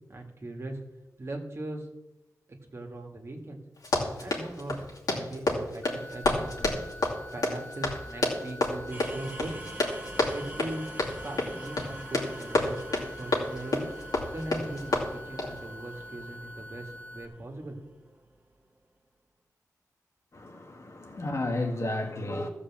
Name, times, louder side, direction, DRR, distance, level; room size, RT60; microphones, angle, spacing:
voice 1, 0.1-0.8 1.2-1.9 2.7-3.6 4.2-4.8 5.1-6.7 7.3-9.5 10.3-10.8 11.2-12.8 13.1-13.9 14.3-18.1, right 1 dB, 45° right, 2.0 m, -39 dB
Run, 3.8-15.6, left 2 dB, 70° left, 2.6 m, -30 dB
sound 1, 5.8-17.3, equal, 25° left, 0.7 m, -46 dB
sound 2, 8.9-18.7, right 1 dB, 25° right, 1.6 m, -46 dB
voice 2, 20.3-22.5, left 2 dB, 50° left, 1.9 m, -32 dB
14.0 x 5.0 x 7.5 m
wide cardioid pair, 75°, 6 cm